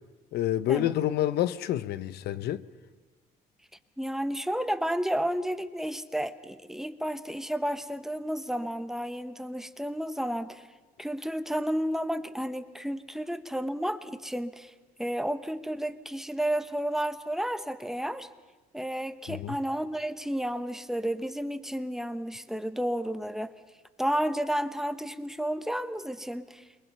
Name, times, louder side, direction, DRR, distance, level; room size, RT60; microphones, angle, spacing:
voice 1, 0.3-2.6 19.3-19.6, left 12 dB, 70° left, 0.7 m, -28 dB
voice 2, 4.0-10.7 11.0-14.7 15.0-18.3 18.7-23.5 24.0-26.6, equal, ahead, 1.1 m, -31 dB
28.5 x 23.0 x 5.6 m
cardioid pair, 110°, 17 cm